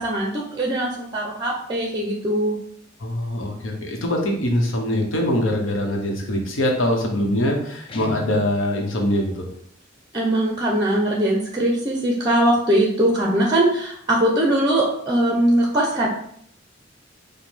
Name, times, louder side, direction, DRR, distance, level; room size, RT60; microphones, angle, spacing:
voice 1, 0.0-2.6 10.1-16.1, right 1 dB, 20° right, -1 dB, 0.6 m, -21 dB
voice 2, 3.0-9.4, left 1 dB, 90° left, 1 dB, 0.9 m, -23 dB
Guitar, 7.9-8.7, left 2 dB, 30° left, 0.4 m, -36 dB
5.2 x 2.2 x 3.3 m, 0.67 s
head